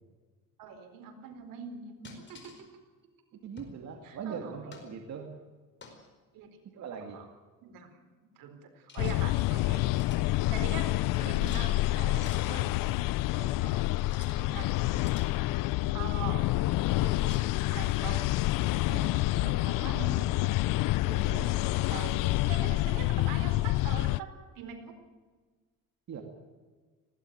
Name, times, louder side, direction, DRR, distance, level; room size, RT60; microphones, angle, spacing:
voice 1, 0.6-2.5 4.0-4.5 4.9-5.0 6.3-6.5 7.1-7.3 7.6-7.9 8.4-10.0 10.5-12.7 13.3-13.9 14.5-14.7 15.9-16.5 17.0-17.4 17.7-18.3 18.7-20.8 21.0-21.6 21.9-25.0, right 6 dB, 80° right, 6 dB, 4.4 m, -43 dB
sound 1, 2.0-2.6 3.6-3.8 4.7-4.9 5.8-6.1 8.9-9.2 9.7-10.2 11.4-11.7 12.2-12.5 14.0-14.4 14.9-15.3 17.2-17.5, left 4 dB, 35° left, 4.8 m, -50 dB
voice 2, 3.4-5.4 6.6-7.2 14.3-14.6 26.1-26.2, right 6 dB, 55° right, 3 dB, 2.5 m, -41 dB
sound 2, 9.0-24.2, left 18 dB, 75° left, 0.5 m, -28 dB
19.5 x 16.5 x 9.2 m, 1.4 s
cardioid pair, 120°, 33 cm